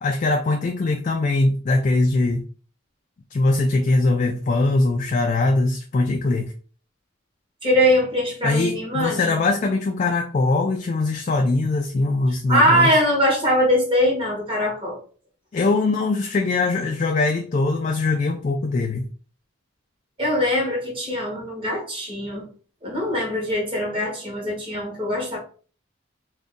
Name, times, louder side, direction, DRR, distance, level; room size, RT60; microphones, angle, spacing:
voice 1, 0.0-2.4 3.3-6.5 8.4-12.9 15.5-19.1, left 2 dB, 40° left, 3 dB, 0.3 m, -21 dB
voice 2, 7.6-9.4 12.5-15.0 20.2-22.4 22.8-25.4, equal, 25° right, -2 dB, 1.2 m, -22 dB
2.6 x 2.5 x 3.6 m, 0.40 s
head